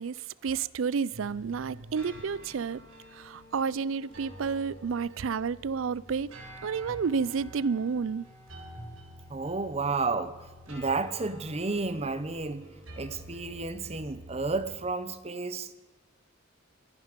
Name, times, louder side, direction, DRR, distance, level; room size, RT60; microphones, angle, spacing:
voice 1, 0.0-2.8 3.1-6.3 6.6-8.2, right 5 dB, 75° right, 0.4 m, -30 dB
sound 1, 1.1-14.8, equal, 90° right, 4.1 m, -48 dB
voice 2, 9.3-10.4 10.7-12.7 13.0-15.7, right 3 dB, 30° right, 0.9 m, -32 dB
25.0 x 10.5 x 5.2 m
head